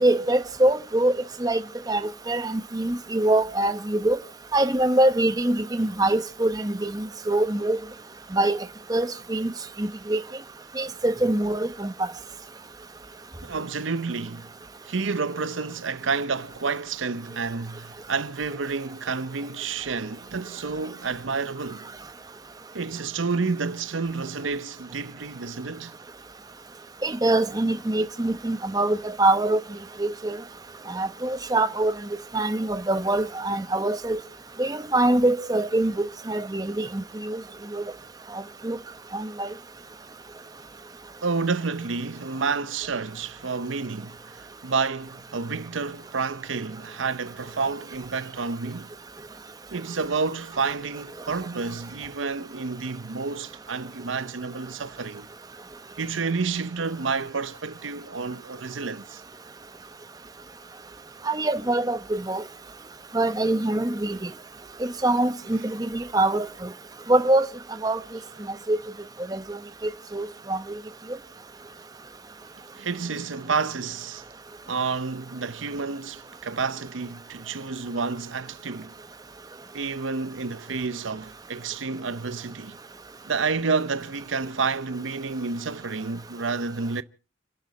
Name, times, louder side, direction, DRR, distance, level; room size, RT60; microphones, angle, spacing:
voice 1, 0.0-1.1 1.4-1.6 1.9-4.2 4.5-7.8 8.3-8.6 8.9-9.5 9.8-10.2 10.8-12.1 27.0-29.6 30.0-30.4 30.9-34.2 34.6-37.4 37.7-37.8 38.3-38.8 39.1-39.5 61.2-62.4 63.1-64.3 64.8-66.7 67.1-67.5 67.8-68.0 68.7-68.8 69.3-70.8, right 1 dB, 20° right, 0.9 m, -24 dB
voice 2, 13.4-14.5 14.8-21.9 22.7-26.0 41.2-48.9 49.7-55.3 56.0-59.2 65.5-65.6 72.8-74.2 74.7-78.9 79.7-82.8 83.3-87.0, right 4 dB, 90° right, 0.8 m, -30 dB
30.0 x 11.5 x 4.1 m
head